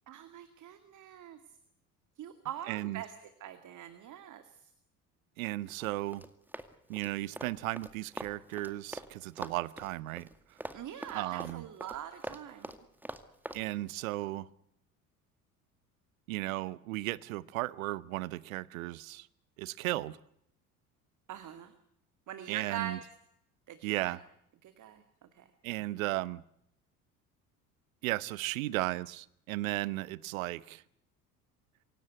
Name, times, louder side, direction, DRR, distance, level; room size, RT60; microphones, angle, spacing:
voice 1, 0.1-1.4 2.2-3.1 3.4-4.4 10.7-12.7 21.3-21.7 22.3-23.0 23.7-24.2 24.6-25.0 25.3-25.5, right 10 dB, 45° right, 2.2 m, -42 dB
voice 2, 2.7-3.0 5.4-6.2 6.9-10.3 11.1-11.7 13.5-14.5 16.3-19.3 19.6-20.2 22.5-23.0 23.8-24.2 25.6-26.4 28.0-30.8, right 18 dB, 65° right, 1.0 m, -35 dB
Run, 5.8-9.1 9.4-13.6, right 1 dB, 5° right, 2.2 m, -43 dB
26.0 x 17.5 x 9.4 m
figure-of-eight pair, 60°, 43 cm